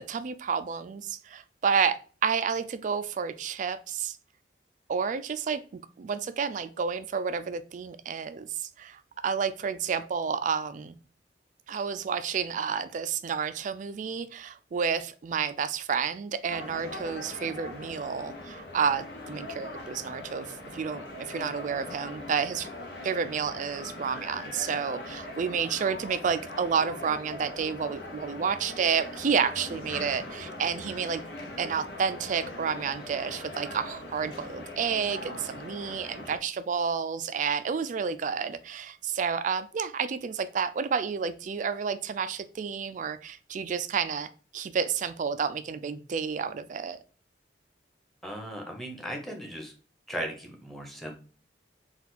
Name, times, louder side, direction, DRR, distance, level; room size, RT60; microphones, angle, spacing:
voice 1, 0.0-4.2 4.9-5.6 6.0-8.5 8.8-10.9 11.7-20.5 20.7-22.7 23.0-31.2 31.6-47.0, right 6 dB, 45° right, 12 dB, 0.3 m, -30 dB
sound 1, 16.5-36.4, left 2 dB, 75° left, 0.9 m, -41 dB
voice 2, 48.2-49.7 50.1-51.1, equal, ahead, 1 dB, 0.9 m, -37 dB
4.2 x 2.4 x 4.0 m, 0.39 s
head